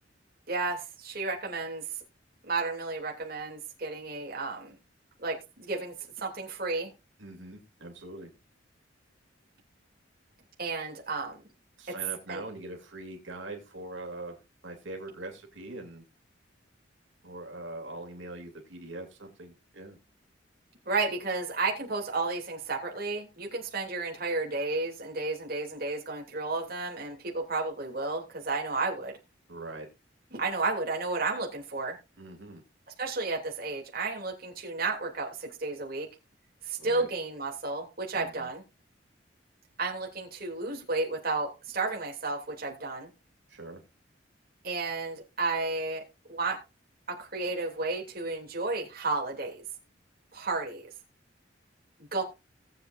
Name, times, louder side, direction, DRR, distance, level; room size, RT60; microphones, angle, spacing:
voice 1, 0.5-1.9 2.4-4.7 5.2-6.9 10.6-11.4 12.3-12.4 20.9-29.1 30.3-32.0 33.0-36.1 36.6-38.6 39.8-43.1 44.6-46.0 46.3-46.6 47.1-49.6 50.3-50.9 52.1-52.2, right 3 dB, 50° right, 0 dB, 2.8 m, -32 dB
voice 2, 7.2-8.3 11.8-14.4 14.6-16.0 17.2-20.0 29.5-29.9 32.2-32.6 36.8-37.1 38.1-38.5 43.5-43.8, right 2 dB, 85° right, 2 dB, 2.8 m, -42 dB
18.0 x 8.0 x 2.6 m, 0.26 s
head